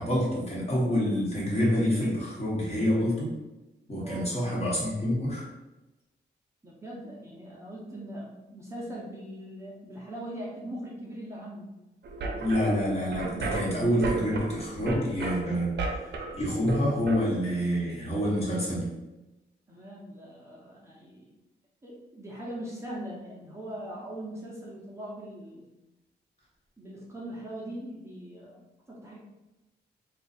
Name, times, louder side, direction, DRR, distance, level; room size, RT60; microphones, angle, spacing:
voice 1, 0.0-3.4 3.9-5.5 12.4-18.9, equal, 35° left, -5 dB, 1.1 m, -27 dB
voice 2, 4.0-4.3 6.6-11.7 19.7-21.3 21.8-25.7 26.8-28.6 28.9-29.2, right 1 dB, 15° right, -6 dB, 0.6 m, -41 dB
sound 1, 12.0-17.2, right 3 dB, 75° right, 0.5 m, -34 dB
2.6 x 2.3 x 4.0 m, 1.0 s
wide cardioid pair, 140°, 18 cm